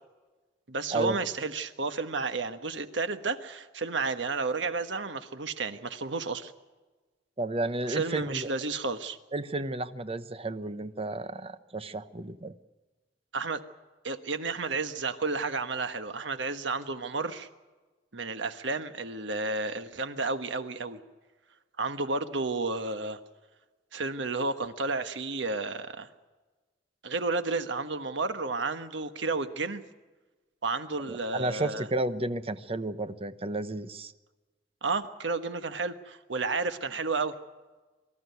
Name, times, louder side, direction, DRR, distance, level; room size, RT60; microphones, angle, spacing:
voice 1, 0.7-6.5 7.9-9.2 13.3-13.6 14.0-17.5 18.1-21.0 21.8-23.2 23.9-26.1 27.0-29.8 30.6-31.9 34.8-37.3, right 3 dB, 75° right, 9 dB, 1.3 m, -32 dB
voice 2, 7.4-8.5 9.3-12.5 31.1-34.1, right 2 dB, 30° right, 11 dB, 1.0 m, -32 dB
24.5 x 13.5 x 9.4 m, 1.2 s
head